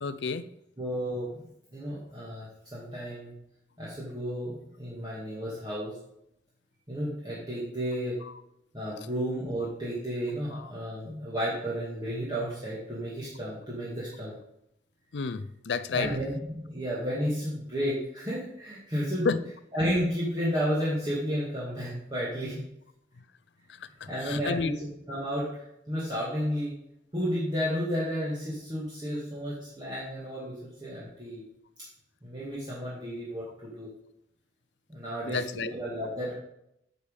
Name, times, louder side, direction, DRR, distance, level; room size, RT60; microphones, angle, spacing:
voice 1, 0.0-0.5 8.2-8.3 10.5-10.7 15.1-16.2 19.2-19.4 23.7-24.8 35.2-35.7, left 4 dB, 85° left, 14 dB, 0.5 m, -31 dB
voice 2, 0.8-1.3 1.7-3.3 3.8-5.9 6.9-8.2 8.7-14.4 15.9-19.4 19.7-22.6 24.1-26.7 27.1-31.4 32.2-33.9 34.9-35.4 35.7-36.3, equal, 25° right, -8 dB, 2.1 m, -32 dB
9.5 x 5.1 x 5.4 m, 0.79 s
head